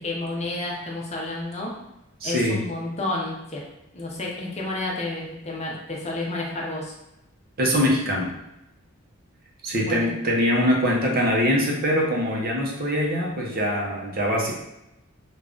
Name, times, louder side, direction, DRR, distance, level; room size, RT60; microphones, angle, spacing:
voice 1, 0.0-1.7 2.2-3.6 3.9-6.9 9.8-10.1, left 2 dB, 30° left, -2 dB, 0.7 m, -30 dB
voice 2, 2.2-2.6 7.6-8.3 9.6-14.5, equal, 45° right, -2 dB, 0.8 m, -23 dB
3.5 x 2.4 x 3.7 m, 0.88 s
head